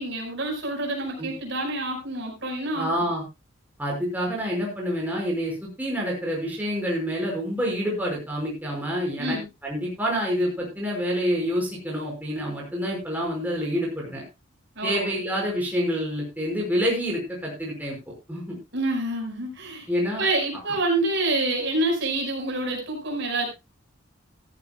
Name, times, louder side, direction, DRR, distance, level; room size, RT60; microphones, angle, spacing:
voice 1, 0.0-3.1 9.2-9.5 14.8-15.1 18.7-19.9 20.2-23.5, right 2 dB, 60° right, 1 dB, 5.5 m, -27 dB
voice 2, 2.7-3.2 3.8-9.4 9.6-14.2 14.8-18.0 18.3-18.6 19.9-20.2, equal, 10° right, -2 dB, 5.7 m, -27 dB
15.0 x 14.5 x 2.4 m, 0.25 s
head